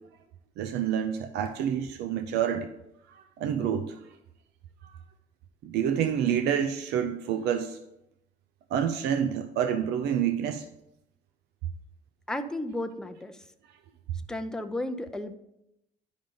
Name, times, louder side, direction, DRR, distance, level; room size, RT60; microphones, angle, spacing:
voice 1, 0.6-2.7 3.1-4.0 4.8-5.0 5.6-7.8 8.7-10.6, right 8 dB, 80° right, 9 dB, 0.5 m, -28 dB
voice 2, 12.3-13.4 14.3-15.4, left 1 dB, 5° left, 6 dB, 0.6 m, -33 dB
10.0 x 5.2 x 3.9 m, 0.84 s
cardioid pair, 110°, 17 cm